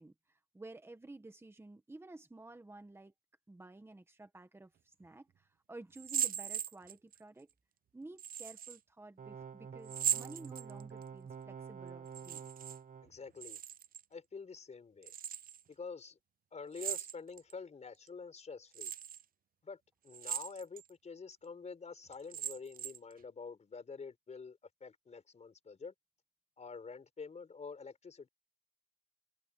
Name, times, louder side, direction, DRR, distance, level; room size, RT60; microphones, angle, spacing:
voice 1, 0.0-3.1 3.5-7.5 7.9-12.5, right 2 dB, 15° right, 1.5 m, -53 dB
sound 1, 5.9-7.2 8.2-8.8 9.9-11.0 12.1-12.8 13.1-14.0 15.0-15.6 16.7-17.5 18.1-18.2 18.7-19.2 20.1-20.9 21.3-21.4 22.1-23.1, right 9 dB, 90° right, 0.4 m, -39 dB
sound 2, 9.2-13.1, right 6 dB, 65° right, 1.1 m, -48 dB
voice 2, 13.0-13.6 14.1-15.1 15.7-16.2 16.5-18.9 19.6-25.9 26.6-28.3, left 5 dB, 50° left, 4.9 m, -47 dB
wide cardioid pair, 175°, 14 cm